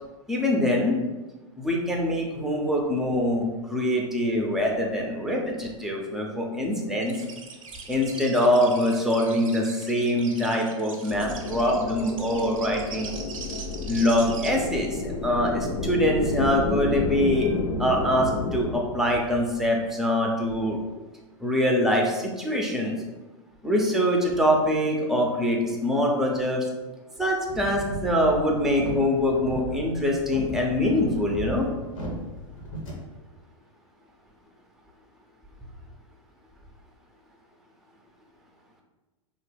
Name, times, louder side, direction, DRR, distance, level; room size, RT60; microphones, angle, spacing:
voice 1, 0.3-1.0 1.6-7.1 7.9-13.1 13.9-17.5 17.8-20.8 21.4-23.0 23.6-26.6 27.2-31.7, left 1 dB, ahead, 0 dB, 0.5 m, -24 dB
sound 1, 7.0-14.5, right 5 dB, 85° right, 0.6 m, -41 dB
sound 2, 11.1-18.8, left 2 dB, 60° left, 0.5 m, -31 dB
sound 3, 27.5-32.9, equal, 90° left, 1.0 m, -37 dB
2.9 x 2.1 x 3.3 m, 1.1 s
hypercardioid pair, 105°, 17 cm